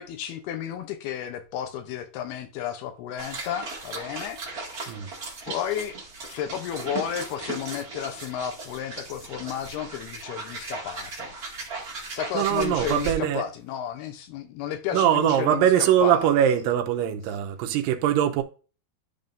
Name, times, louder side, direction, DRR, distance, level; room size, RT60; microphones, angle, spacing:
voice 1, 0.0-4.4 5.5-6.0 6.3-11.3 12.1-16.7, left 9 dB, 80° left, 2.8 m, -32 dB
sound 1, 3.2-13.1, right 3 dB, 30° right, 1.8 m, -37 dB
voice 2, 12.3-13.4 14.9-18.4, right 10 dB, 75° right, 2.2 m, -22 dB
12.0 x 5.4 x 2.6 m
omnidirectional pair, 4.5 m